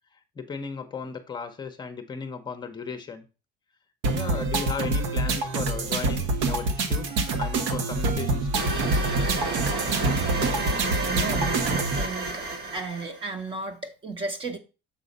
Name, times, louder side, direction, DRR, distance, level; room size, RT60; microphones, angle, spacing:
voice 1, 0.4-3.2 4.1-7.1 7.4-8.8, left 5 dB, 20° left, 0.8 m, -35 dB
sound 1, 4.0-12.0, right 2 dB, 75° right, 1.2 m, -26 dB
sound 2, 8.5-13.3, right 2 dB, 55° right, 1.6 m, -30 dB
voice 2, 10.8-12.5 12.7-14.6, right 3 dB, 25° right, 1.1 m, -34 dB
7.2 x 3.9 x 5.3 m
cardioid pair, 145°, 20 cm